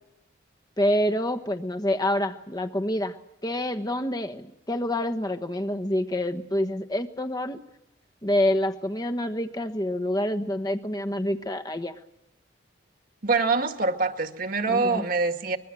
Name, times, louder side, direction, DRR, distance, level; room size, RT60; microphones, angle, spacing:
voice 1, 0.8-3.2 3.4-7.6 8.2-12.0 14.7-15.0, left 1 dB, 20° left, 7 dB, 1.3 m, -27 dB
voice 2, 13.2-15.6, right 4 dB, 50° right, 6 dB, 1.9 m, -25 dB
24.5 x 22.0 x 7.6 m, 0.93 s
head